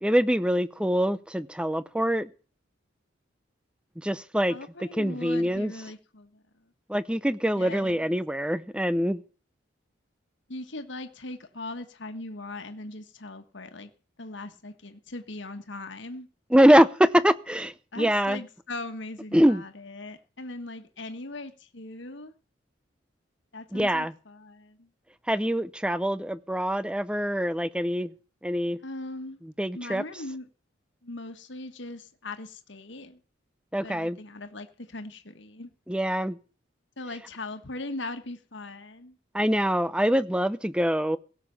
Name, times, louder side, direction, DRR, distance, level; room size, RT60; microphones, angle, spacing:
voice 1, 0.0-2.3 4.0-4.6 4.9-5.7 6.9-9.2 16.5-18.4 19.3-19.6 23.7-24.1 25.3-28.1 28.4-28.8 29.6-30.0 33.7-34.2 35.9-36.4 39.3-41.2, equal, 5° right, 0.6 m, -24 dB
voice 2, 4.5-6.4 7.6-8.1 10.5-13.9 14.2-16.3 17.9-22.3 23.5-24.9 28.8-29.4 29.7-30.5 31.0-33.2 33.8-35.7 37.0-39.2, left 2 dB, 65° left, 1.5 m, -39 dB
17.0 x 7.0 x 7.0 m
head